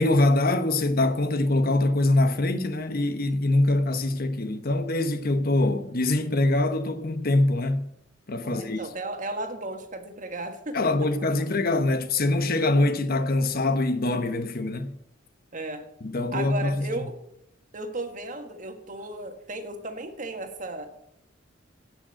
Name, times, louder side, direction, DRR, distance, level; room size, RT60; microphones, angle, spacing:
voice 1, 0.0-7.9 8.3-8.8 10.7-14.9 16.0-16.8, left 2 dB, 50° left, 1.0 m, -24 dB
voice 2, 8.4-11.1 15.5-15.9 16.3-17.2 17.7-20.9, right 2 dB, 40° right, 1.6 m, -35 dB
16.5 x 6.3 x 7.6 m
head